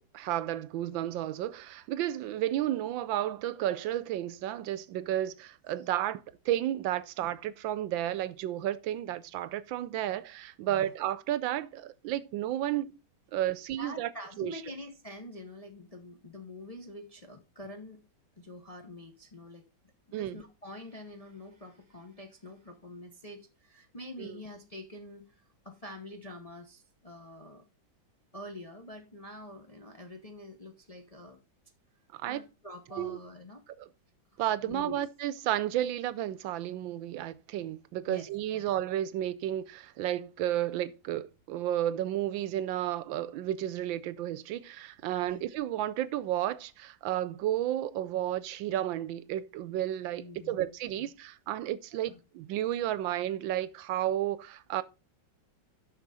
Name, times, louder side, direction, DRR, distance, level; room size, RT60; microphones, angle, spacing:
voice 1, 0.1-13.0 13.3-14.1 14.4-14.5 20.1-20.4 24.2-24.4 32.1-32.4 33.0-33.2 33.8-33.9 34.4-54.8, right 12 dB, 80° right, 1.3 m, -32 dB
voice 2, 13.8-18.0 18.4-19.6 20.2-27.6 28.3-31.4 32.3-33.6 34.3-35.0 38.1-38.3 38.5-38.6 45.3-45.4 50.2-50.7 51.0-51.1 51.9-52.2, left 1 dB, 30° left, 0.6 m, -46 dB
9.7 x 6.3 x 4.1 m
omnidirectional pair, 2.1 m